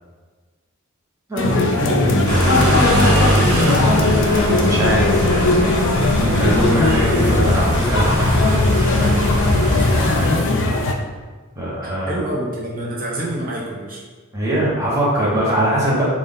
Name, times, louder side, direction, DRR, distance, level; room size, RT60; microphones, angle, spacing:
voice 1, 1.3-3.0 3.3-3.6 3.9-4.2 4.5-5.7 6.2-8.4 11.6-12.2 14.3-16.0, right 1 dB, 15° right, -8 dB, 1.0 m, -21 dB
sound 1, 1.4-10.9, left 2 dB, 60° left, 0.4 m, -19 dB
sound 2, 2.3-10.3, equal, 85° right, 0.9 m, -20 dB
voice 2, 10.1-10.6 11.8-14.0, right 1 dB, 40° right, -4 dB, 0.7 m, -27 dB
3.9 x 2.4 x 3.5 m, 1.4 s
head